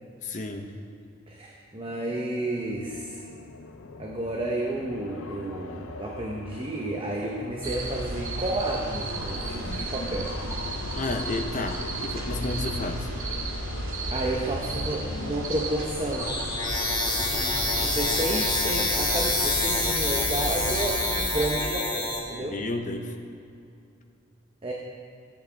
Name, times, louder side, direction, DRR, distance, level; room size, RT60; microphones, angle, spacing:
voice 1, 0.2-0.7 10.9-13.1 22.4-23.1, left 2 dB, 40° left, 4 dB, 0.8 m, -31 dB
voice 2, 1.3-3.2 4.0-10.6 14.1-16.3 17.2-22.6 24.6-24.7, right 1 dB, 25° right, -1 dB, 0.8 m, -31 dB
sound 1, 1.9-20.8, left 3 dB, 70° left, 0.6 m, -40 dB
sound 2, 7.6-21.5, right 2 dB, 85° right, 2.0 m, -33 dB
sound 3, 16.2-22.2, left 2 dB, 20° left, 1.6 m, -27 dB
16.0 x 8.4 x 3.4 m, 2.5 s
head